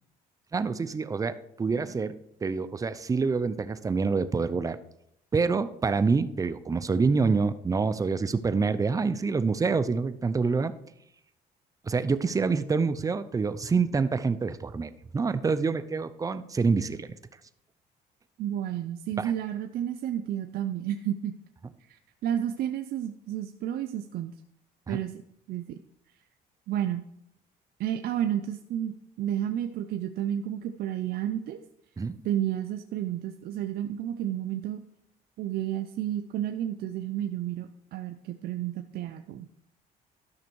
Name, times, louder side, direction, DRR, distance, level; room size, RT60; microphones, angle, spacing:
voice 1, 0.5-4.8 5.3-10.7 11.8-17.1 19.2-19.3 24.9-25.0 32.0-32.2, right 4 dB, 20° right, 12 dB, 0.6 m, -27 dB
voice 2, 18.4-21.4 21.8-24.3 24.9-25.2 25.5-25.8 26.7-27.1 27.8-31.6 32.2-34.8 35.4-39.5, right 11 dB, 65° right, 7 dB, 0.6 m, -31 dB
12.5 x 6.2 x 4.6 m, 0.76 s
cardioid pair, 110°, 17 cm